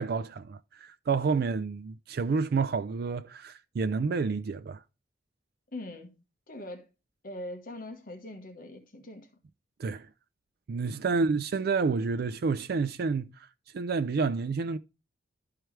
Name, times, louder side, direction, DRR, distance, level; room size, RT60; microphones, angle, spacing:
voice 1, 0.0-4.8 9.8-10.1 10.7-13.3 13.7-14.8, right 4 dB, 55° right, 0.4 m, -29 dB
voice 2, 5.7-6.2 6.5-6.9 7.2-9.3 11.1-11.4, left 1 dB, 45° left, 1.2 m, -42 dB
12.5 x 4.6 x 3.2 m
head